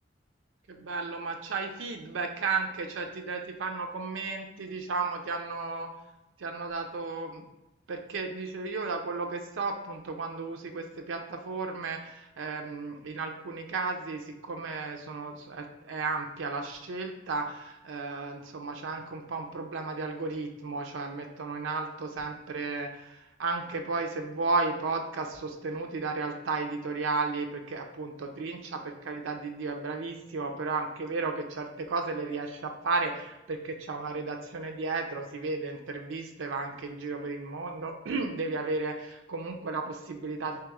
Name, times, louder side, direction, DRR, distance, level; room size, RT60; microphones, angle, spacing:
voice 1, 0.7-5.9 6.4-7.5 7.9-40.6, right 3 dB, 80° right, 3 dB, 0.4 m, -34 dB
3.0 x 3.0 x 3.5 m, 0.94 s
head